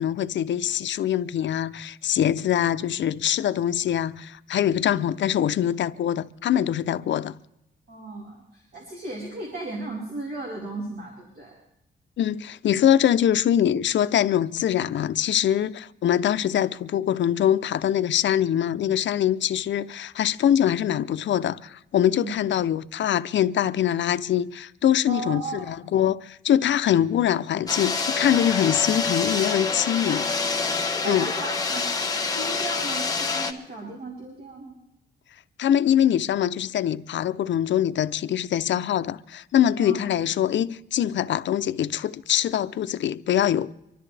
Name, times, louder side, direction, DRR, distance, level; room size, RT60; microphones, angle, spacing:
voice 1, 0.0-7.3 12.2-30.2 31.1-31.3 35.6-43.7, left 10 dB, 70° left, 0.6 m, -23 dB
voice 2, 7.9-11.5 22.1-22.3 25.1-25.6 30.0-30.2 30.9-31.8 32.3-34.8 39.8-40.0, right 2 dB, 55° right, 4.6 m, -35 dB
sound 1, 27.7-33.5, left 4 dB, 20° left, 1.5 m, -27 dB
25.0 x 13.0 x 3.3 m
wide cardioid pair, 130°, 19 cm